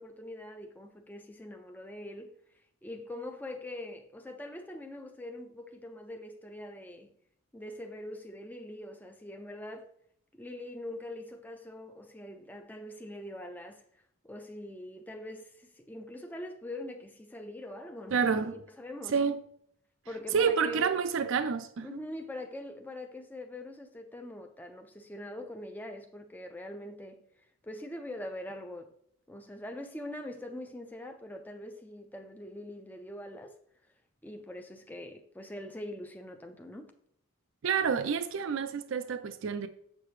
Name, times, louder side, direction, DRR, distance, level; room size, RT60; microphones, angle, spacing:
voice 1, 0.0-2.4 2.8-7.1 7.5-9.9 10.3-13.8 14.2-19.2 20.1-21.0 21.8-27.2 27.6-28.9 29.3-33.6 34.2-36.9, left 1 dB, 10° left, 0.4 m, -43 dB
voice 2, 18.1-18.6 19.1-19.4 20.3-22.0 37.6-39.7, right 6 dB, 55° right, 0.4 m, -28 dB
7.5 x 6.6 x 3.2 m
head